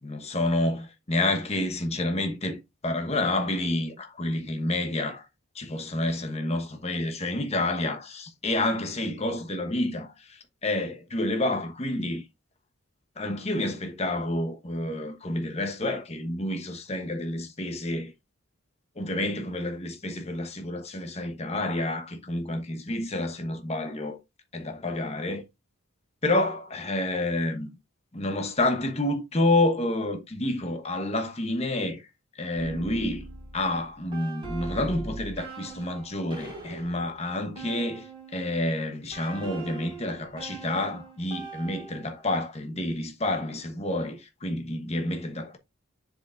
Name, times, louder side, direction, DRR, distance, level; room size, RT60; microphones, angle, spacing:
voice 1, 0.0-5.3 5.5-12.2 13.2-18.1 19.0-24.2 24.5-25.4 26.2-27.7 28.1-32.1 32.3-33.2 33.5-38.1 38.3-45.6, left 1 dB, 30° left, 1.0 m, -29 dB
sound 1, 32.6-38.5 39.1-42.3, right 3 dB, 25° right, 3.6 m, -41 dB
7.4 x 4.9 x 2.5 m
head